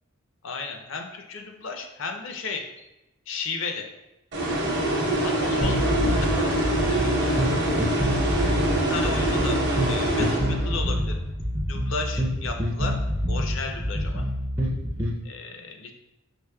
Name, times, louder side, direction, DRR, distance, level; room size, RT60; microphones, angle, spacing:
voice 1, 0.4-2.9 3.3-3.8 5.2-7.5 8.7-9.6 9.9-11.2 11.6-13.0 13.3-14.3 15.2-15.9, left 4 dB, 65° left, 4 dB, 0.5 m, -34 dB
sound 1, 4.3-11.0, right 1 dB, 50° right, 0.8 m, -25 dB
sound 2, 5.6-15.2, equal, 10° right, 0.4 m, -27 dB
4.9 x 2.9 x 2.2 m, 0.97 s
head